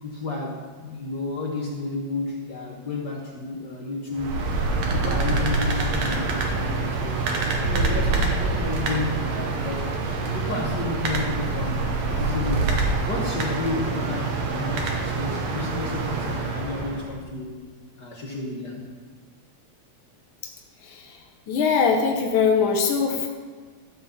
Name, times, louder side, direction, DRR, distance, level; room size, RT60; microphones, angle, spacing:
voice 1, 0.0-4.3 4.8-7.2 7.6-10.0 10.3-17.6 18.0-18.8, left 3 dB, 55° left, -1 dB, 1.2 m, -32 dB
sound 1, 4.1-17.1, right 3 dB, 70° right, 2.4 m, -26 dB
voice 2, 20.8-21.2 21.5-23.3, left 5 dB, 75° left, 2 dB, 1.1 m, -22 dB
13.0 x 5.5 x 6.9 m, 1.5 s
omnidirectional pair, 3.3 m